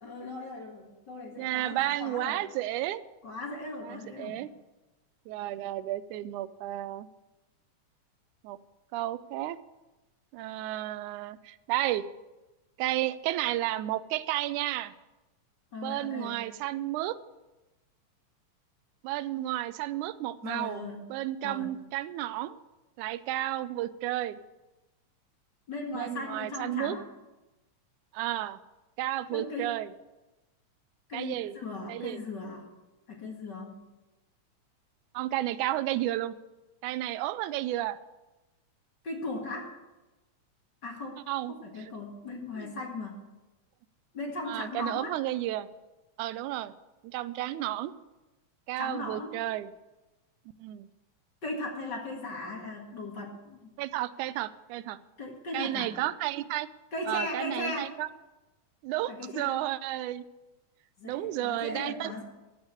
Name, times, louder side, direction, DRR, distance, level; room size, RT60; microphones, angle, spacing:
voice 1, 0.0-2.4 3.2-4.4 15.7-16.4 20.4-21.1 21.4-21.7 25.7-27.0 29.3-29.7 31.1-32.7 33.1-33.8 39.0-39.8 40.8-43.2 44.1-45.1 48.8-49.4 51.4-53.7 55.2-55.9 56.9-57.9 59.1-59.6 61.0-62.2, left 2 dB, 40° left, 0 dB, 2.2 m, -38 dB
voice 2, 1.4-3.0 3.8-4.5 5.3-7.1 8.4-8.6 8.9-9.6 10.3-12.1 12.8-14.9 15.8-17.2 19.0-20.8 21.1-22.6 23.0-24.4 25.9-27.0 28.1-28.6 29.0-29.9 31.1-31.5 31.9-32.2 35.1-36.4 36.8-38.0 41.3-41.5 41.8-41.9 42.6-42.7 44.5-45.7 46.2-46.7 47.0-47.9 48.7-49.7 50.6-50.9 53.8-55.0 55.5-56.7 57.1-58.1 58.8-60.2 61.0-62.2, right 14 dB, 90° right, 15 dB, 2.1 m, -32 dB
14.0 x 6.5 x 8.0 m, 1.1 s
omnidirectional pair, 3.4 m